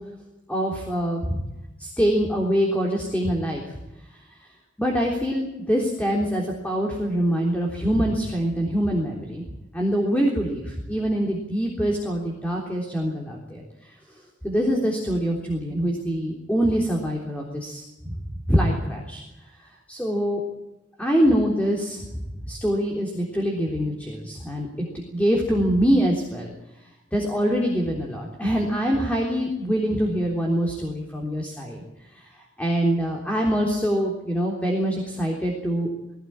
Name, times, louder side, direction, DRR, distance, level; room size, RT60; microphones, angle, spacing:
voice 1, 0.5-1.4 1.8-3.6 4.8-9.4 9.7-13.6 14.4-18.1 18.5-19.2 19.9-20.4 21.0-22.0 22.4-26.5 27.1-31.8 32.1-32.3 32.6-35.9, equal, 5° left, -1 dB, 3.5 m, -24 dB
21.0 x 17.5 x 8.9 m, 0.96 s
head